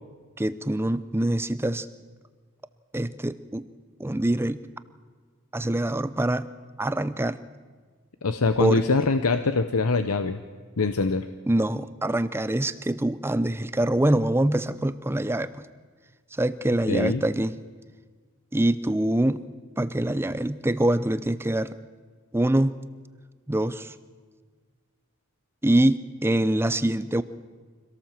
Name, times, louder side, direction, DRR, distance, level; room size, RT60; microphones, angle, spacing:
voice 1, 0.4-1.9 2.9-3.7 4.0-4.6 5.5-6.5 6.8-7.4 8.6-8.9 11.5-15.6 16.3-17.5 18.5-19.5 19.8-21.8 22.3-22.8 23.5-23.9 25.6-27.2, right 1 dB, 10° right, 14 dB, 0.5 m, -24 dB
voice 2, 8.2-10.4 10.8-11.2 16.9-17.2, left 3 dB, 85° left, 10 dB, 0.8 m, -23 dB
25.0 x 17.5 x 7.4 m, 1.5 s
head